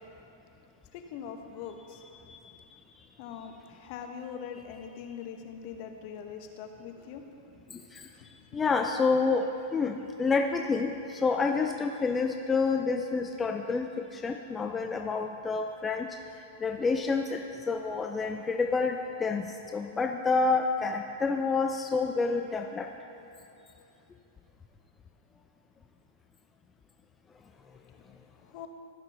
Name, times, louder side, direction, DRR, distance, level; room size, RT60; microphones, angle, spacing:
voice 1, 0.9-2.0 3.2-7.6 8.2-8.3 28.1-28.2 28.5-28.7, left 7 dB, 50° left, 5 dB, 0.9 m, -42 dB
voice 2, 7.7-8.1 8.5-16.2 16.6-22.9, left 4 dB, 15° left, 4 dB, 0.4 m, -29 dB
14.5 x 5.9 x 3.4 m, 2.9 s
hypercardioid pair, 125°, 0 cm